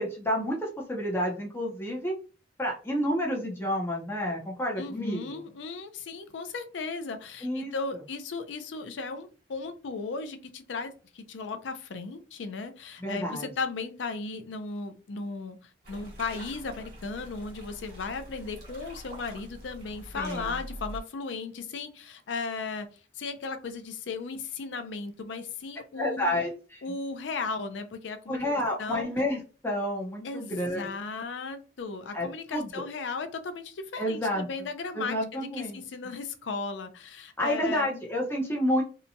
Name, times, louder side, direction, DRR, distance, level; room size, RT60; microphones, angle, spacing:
voice 1, 0.0-2.1 2.6-5.4 7.4-7.7 13.0-13.5 20.1-20.6 26.0-27.0 28.3-30.9 32.1-32.8 34.0-34.5 34.9-35.8 37.4-38.8, equal, 15° left, -2 dB, 0.6 m, -30 dB
voice 2, 4.8-15.6 15.9-22.9 23.1-26.4 26.8-28.4 28.8-29.1 30.2-37.9, left 4 dB, 85° left, 8 dB, 0.5 m, -36 dB
sound 1, 15.8-21.0, equal, 55° right, 1.3 m, -44 dB
2.8 x 2.2 x 2.6 m, 0.35 s
head